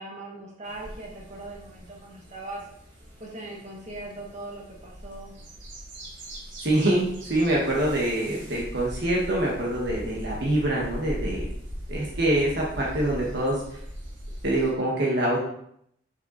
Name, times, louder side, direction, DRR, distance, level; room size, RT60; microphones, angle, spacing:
voice 1, 0.0-2.6 3.2-5.3, right 2 dB, 35° right, -3 dB, 2.0 m, -40 dB
sound 1, 0.6-14.7, equal, 75° right, 2.7 m, -40 dB
voice 2, 6.6-11.5 11.9-13.6 14.4-15.4, right 1 dB, 60° right, -3 dB, 1.6 m, -25 dB
6.8 x 5.9 x 4.0 m, 0.70 s
head